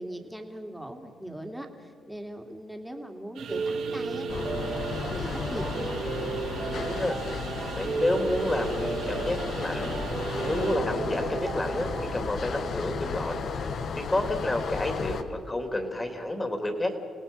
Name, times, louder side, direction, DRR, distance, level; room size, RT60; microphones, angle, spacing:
voice 1, 0.0-6.0, right 1 dB, 5° right, 3 dB, 2.6 m, -40 dB
sound 1, 3.3-10.8, right 5 dB, 80° right, 4.1 m, -42 dB
Piano, 3.5-12.2, right 4 dB, 50° right, 2.5 m, -34 dB
sound 2, 4.3-15.2, left 5 dB, 60° left, 1.4 m, -34 dB
voice 2, 6.5-7.2 7.8-13.7 14.0-17.0, left 1 dB, 20° left, 5 dB, 3.1 m, -30 dB
29.5 x 18.0 x 5.6 m, 2.1 s
cardioid pair, 90°, 0 cm